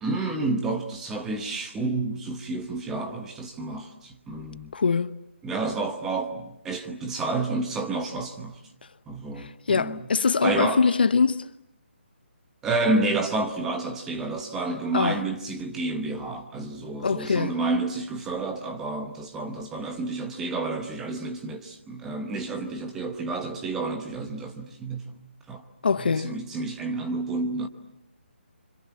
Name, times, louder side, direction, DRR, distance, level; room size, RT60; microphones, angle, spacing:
voice 1, 0.0-4.7 5.4-8.6 9.1-10.1 10.4-10.8 12.6-25.1 25.5-25.6 26.0-27.7, right 3 dB, 5° right, 1.0 m, -30 dB
voice 2, 4.7-5.1 9.4-11.5 14.9-15.2 17.0-17.6 25.8-26.3, left 5 dB, 55° left, 1.0 m, -23 dB
29.5 x 25.5 x 7.2 m
hypercardioid pair, 175°, 6 cm